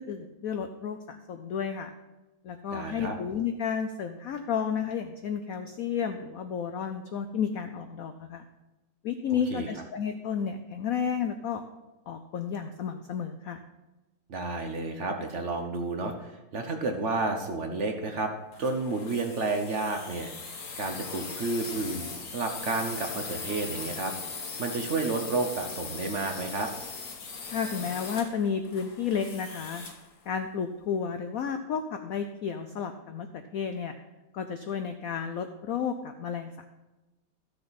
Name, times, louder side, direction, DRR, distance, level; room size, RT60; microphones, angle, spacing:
voice 1, 0.0-1.9 2.4-8.4 9.0-11.6 12.1-13.6 27.5-29.8 30.3-33.9 34.3-36.7, left 7 dB, 80° left, 7 dB, 0.7 m, -32 dB
voice 2, 2.7-3.1 9.5-9.7 14.3-18.3 18.6-20.3 20.8-24.1 24.6-26.7, right 3 dB, 50° right, 4 dB, 0.9 m, -31 dB
sound 1, 18.5-30.1, left 4 dB, 50° left, 1.2 m, -39 dB
13.5 x 6.8 x 4.1 m, 1.1 s
omnidirectional pair, 2.2 m